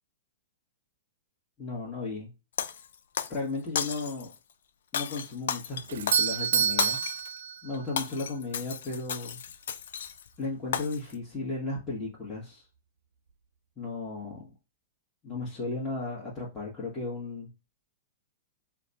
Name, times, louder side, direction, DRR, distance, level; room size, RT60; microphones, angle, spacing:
voice 1, 1.6-2.3 3.3-4.3 4.9-7.0 7.6-9.4 10.4-12.6 13.8-14.5 15.2-17.5, left 3 dB, 20° left, -6 dB, 1.5 m, -35 dB
Shatter, 2.6-3.4 3.8-4.4 4.9-7.3 7.7-10.3 10.7-11.1, left 8 dB, 70° left, 0.4 m, -34 dB
Doorbell, 5.9-8.1, right 7 dB, 70° right, 0.4 m, -28 dB
2.9 x 2.3 x 4.1 m, 0.28 s
hypercardioid pair, 115°, 0 cm